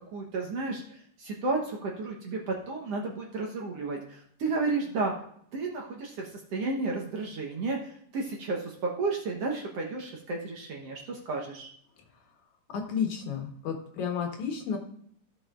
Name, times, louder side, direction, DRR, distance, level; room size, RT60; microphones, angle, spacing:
voice 1, 0.1-5.1 5.5-11.7, right 3 dB, 60° right, 0 dB, 1.9 m, -32 dB
voice 2, 12.7-14.8, left 7 dB, 70° left, 2 dB, 2.7 m, -32 dB
15.0 x 6.6 x 2.5 m, 0.65 s
omnidirectional pair, 3.7 m